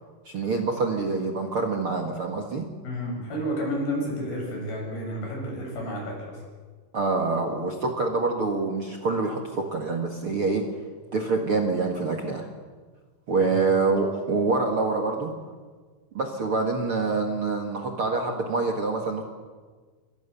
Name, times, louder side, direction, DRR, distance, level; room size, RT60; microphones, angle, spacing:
voice 1, 0.3-2.7 6.9-10.7 11.1-12.5 13.3-15.3 16.1-19.2, right 3 dB, 45° right, 2 dB, 2.1 m, -26 dB
voice 2, 2.8-6.4 13.4-13.5, equal, 75° left, -1 dB, 9.6 m, -31 dB
28.5 x 23.0 x 7.1 m, 1.5 s
omnidirectional pair, 4.5 m